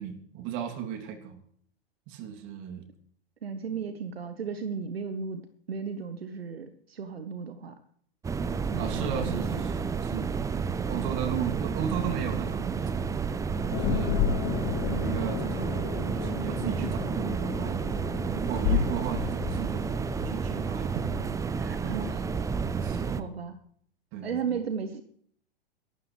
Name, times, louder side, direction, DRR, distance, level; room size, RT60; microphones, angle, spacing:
voice 1, 0.0-1.4 2.1-2.8 3.7-3.8 8.8-10.5 10.8-12.9 13.5-17.9 18.3-21.2 22.8-23.3 24.1-24.6, right 9 dB, 40° right, 5 dB, 3.0 m, -36 dB
voice 2, 3.4-7.8 8.7-9.6 21.6-22.3 23.2-23.6 24.2-25.0, right 6 dB, 75° right, 10 dB, 1.3 m, -35 dB
sound 1, 8.2-23.2, right 5 dB, 10° right, 0.7 m, -31 dB
sound 2, 13.7-21.7, left 8 dB, 45° left, 1.8 m, -33 dB
23.0 x 12.5 x 3.3 m, 0.62 s
figure-of-eight pair, 100°, 31 cm